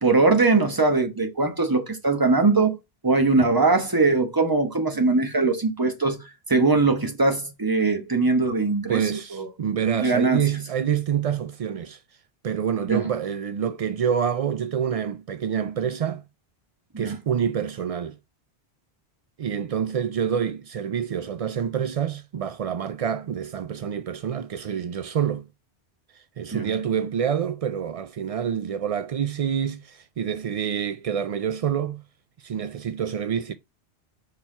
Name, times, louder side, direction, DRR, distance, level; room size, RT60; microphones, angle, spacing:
voice 1, 0.0-2.8 3.0-6.2 6.5-9.0 9.3-9.5 10.0-10.4 12.9-13.0 16.9-17.1 26.5-26.7, right 3 dB, 20° right, 1.1 m, -21 dB
voice 2, 8.9-12.0 12.4-16.2 17.0-18.2 19.4-25.4 26.1-32.0 32.4-33.5, right 8 dB, 60° right, 0.4 m, -27 dB
5.5 x 4.4 x 4.5 m
omnidirectional pair, 1.1 m